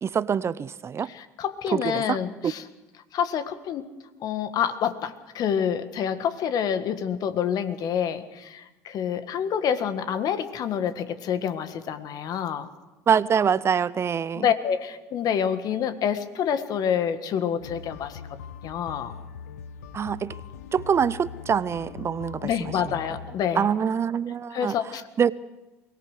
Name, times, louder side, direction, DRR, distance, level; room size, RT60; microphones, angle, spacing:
voice 1, 0.0-1.1 1.7-2.2 2.4-2.5 13.1-14.5 19.9-20.4 20.7-22.7 23.6-24.7 25.2-25.3, right 7 dB, 35° right, 19 dB, 0.6 m, -24 dB
voice 2, 1.1-2.6 3.1-3.9 4.2-12.7 14.3-18.2 18.6-19.1 22.4-23.7 24.5-25.1, left 8 dB, 50° left, 11 dB, 1.6 m, -27 dB
sound 1, 17.6-23.4, left 6 dB, 80° left, 0.8 m, -41 dB
23.0 x 18.0 x 6.5 m, 1.1 s
hypercardioid pair, 65°, 8 cm